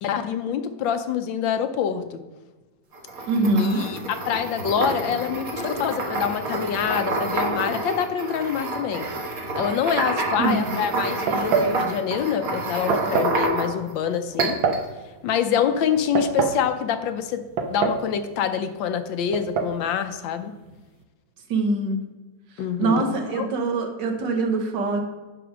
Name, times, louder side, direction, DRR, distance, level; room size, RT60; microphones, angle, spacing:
voice 1, 0.0-2.2 3.6-9.1 9.6-14.6 15.2-17.4 17.7-20.5 22.6-23.5, left 8 dB, 75° left, 9 dB, 1.3 m, -26 dB
Pestle and mortar grinding salt, 2.9-13.9 14.4-14.8, right 2 dB, 50° right, 1.6 m, -28 dB
voice 2, 3.3-3.8 10.4-10.8 21.5-22.0 22.8-25.0, right 3 dB, 65° right, 3 dB, 1.7 m, -23 dB
sound 1, 11.3-11.8 12.9-13.4 14.4-14.9 15.9-16.6 17.6-18.1 18.4-18.5 19.3-19.8, right 5 dB, 85° right, 1.7 m, -24 dB
10.0 x 3.9 x 6.1 m, 1.2 s
omnidirectional pair, 2.1 m